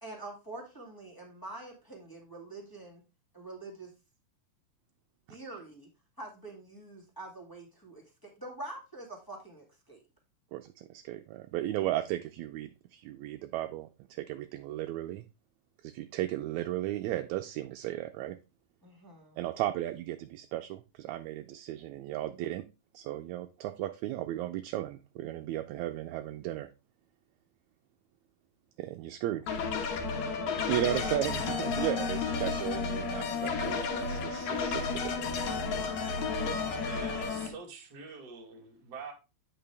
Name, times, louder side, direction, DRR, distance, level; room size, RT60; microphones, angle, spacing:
voice 1, 0.0-3.0 3.3-3.9 5.3-5.9 6.2-10.0 18.8-19.4 29.2-29.4 31.7-32.1, right 2 dB, 10° left, -3 dB, 1.8 m, -46 dB
voice 2, 10.5-15.3 15.8-18.4 19.4-22.7 22.9-26.7 28.8-29.5 30.7-35.5 36.5-36.6, right 14 dB, 80° right, 6 dB, 1.9 m, -35 dB
sound 1, 29.5-37.5, left 5 dB, 70° left, 2.5 m, -32 dB
voice 3, 36.5-39.1, right 5 dB, 40° right, -1 dB, 1.9 m, -45 dB
8.8 x 5.3 x 3.4 m, 0.28 s
omnidirectional pair, 3.4 m